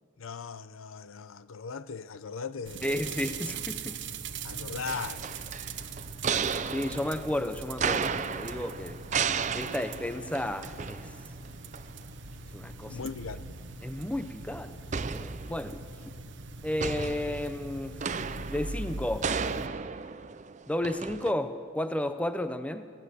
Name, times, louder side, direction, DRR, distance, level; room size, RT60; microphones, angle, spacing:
voice 1, 0.2-3.1 4.4-5.5 12.9-13.6, left 5 dB, 85° left, 0.6 m, -39 dB
sound 1, 2.7-19.7, right 4 dB, 60° right, 1.0 m, -41 dB
voice 2, 2.8-4.0 6.7-9.0 9.5-11.1 12.5-13.0 13.8-15.8 16.6-18.0 18.5-19.3 20.7-22.9, left 1 dB, 5° left, 0.6 m, -33 dB
sound 2, 4.9-11.5 11.7-11.8 14.9-16.0 16.8-21.3, right 6 dB, 35° right, 0.5 m, -34 dB
24.0 x 17.0 x 6.8 m
head